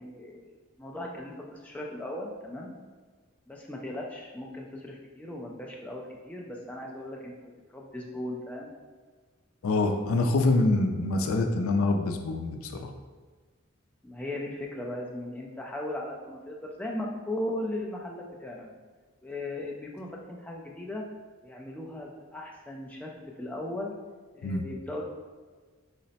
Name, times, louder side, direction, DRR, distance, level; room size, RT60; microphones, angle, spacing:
voice 1, 0.0-2.7 3.5-8.7 14.0-18.8 19.2-21.0 21.4-23.9 24.3-25.0, left 1 dB, 5° left, -2 dB, 0.3 m, -37 dB
voice 2, 9.6-12.9 24.4-24.6, left 2 dB, 80° left, 5 dB, 0.4 m, -25 dB
3.9 x 2.1 x 4.0 m, 1.4 s
head